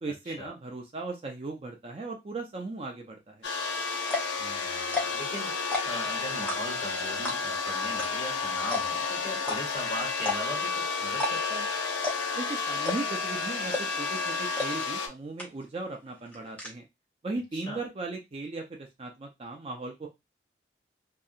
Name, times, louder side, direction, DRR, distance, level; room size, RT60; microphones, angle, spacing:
voice 1, 0.0-3.5 12.4-16.8 17.2-20.1, right 3 dB, 30° right, 1 dB, 0.4 m, -37 dB
sound 1, 3.4-15.1, left 4 dB, 75° left, 0.6 m, -31 dB
sound 2, 4.1-4.4 4.8-5.3 5.6-6.0 6.5-6.9 7.2-7.6 8.0-8.1 8.3-8.4 8.7-9.1 9.4-9.6 10.2-10.6 11.1-11.6 12.0-12.4 12.8-13.2 13.7-14.0 14.6-14.7 15.0-15.1 15.4-15.8 16.1-16.7, left 3 dB, 10° left, 0.6 m, -31 dB
voice 2, 4.4-11.6 17.5-17.8, equal, 25° left, -5 dB, 1.5 m, -39 dB
2.7 x 2.3 x 2.4 m, 0.21 s
head